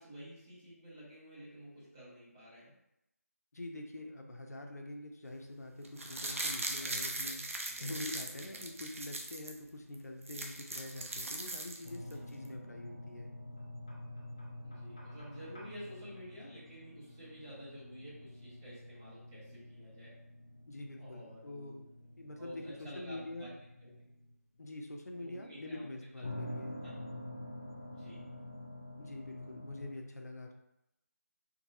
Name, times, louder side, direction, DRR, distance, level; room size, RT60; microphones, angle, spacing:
voice 1, 0.0-2.7 6.8-7.0 7.7-7.9 8.3-8.5 12.0-12.2 14.6-20.1 20.9-21.8 22.4-23.5 25.2-25.9 26.8-27.0 27.9-28.2 29.7-29.9, equal, 15° right, -11 dB, 1.1 m, -51 dB
voice 2, 3.5-13.3 20.7-23.5 24.6-26.8 29.0-30.5, left 2 dB, 80° left, 2 dB, 0.6 m, -45 dB
sound 1, 5.8-9.5 9.9-10.0 10.2-12.1 12.4-12.5, right 2 dB, 55° right, 0.6 m, -39 dB
sound 2, 11.8-24.6 26.2-29.9, left 1 dB, 20° left, 0.3 m, -48 dB
3.9 x 2.7 x 2.6 m, 0.85 s
figure-of-eight pair, 170°, 9 cm